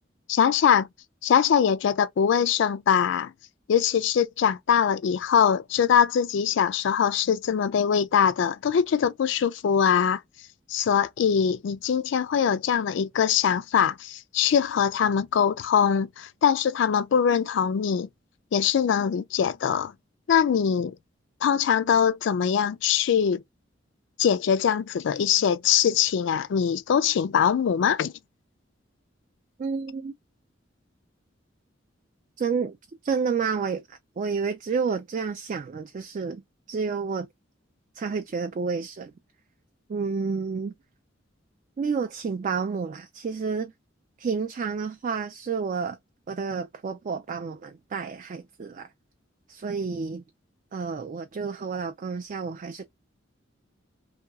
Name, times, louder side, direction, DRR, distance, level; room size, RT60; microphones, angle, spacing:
voice 1, 0.3-0.9 1.2-3.3 3.7-10.2 10.7-18.1 18.5-19.9 20.3-21.0 21.4-23.4 24.2-28.1, left 8 dB, 70° left, 0.3 m, -22 dB
voice 2, 29.6-30.1 32.4-32.8 33.0-36.4 36.7-37.3 38.0-39.1 39.9-40.7 41.8-43.7 44.2-46.0 46.3-48.9 49.5-50.2 50.7-52.9, right 5 dB, 40° right, 0.3 m, -30 dB
2.8 x 2.3 x 2.2 m
head